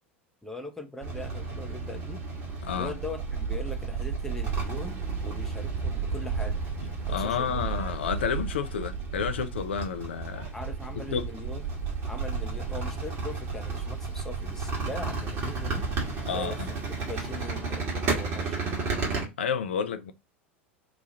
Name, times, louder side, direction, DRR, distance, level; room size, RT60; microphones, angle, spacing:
voice 1, 0.4-2.2 2.7-6.6 7.1-7.9 10.5-11.6 12.1-15.9 16.3-16.6 16.9-18.9, left 2 dB, 5° left, 0.7 m, -41 dB
sound 1, 1.0-19.2, right 4 dB, 40° right, 1.4 m, -32 dB
voice 2, 2.6-2.9 7.0-10.5 11.0-11.3 16.2-16.7 19.4-20.1, left 7 dB, 65° left, 0.4 m, -30 dB
3.0 x 2.4 x 3.8 m
figure-of-eight pair, 80°, 7 cm